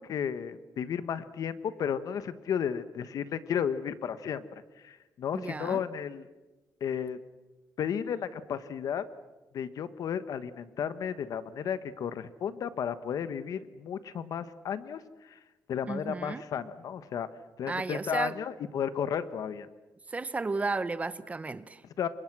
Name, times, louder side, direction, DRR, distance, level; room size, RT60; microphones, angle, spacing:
voice 1, 0.0-6.3 6.8-7.2 7.8-9.0 9.5-15.4 15.7-17.3 17.6-19.7 22.0-22.1, left 8 dB, 65° left, 1.3 m, -33 dB
voice 2, 5.3-5.8 15.9-16.4 17.7-18.3 20.1-21.8, right 3 dB, 20° right, 0.8 m, -33 dB
29.5 x 25.5 x 6.2 m
cardioid pair, 145°, 7 cm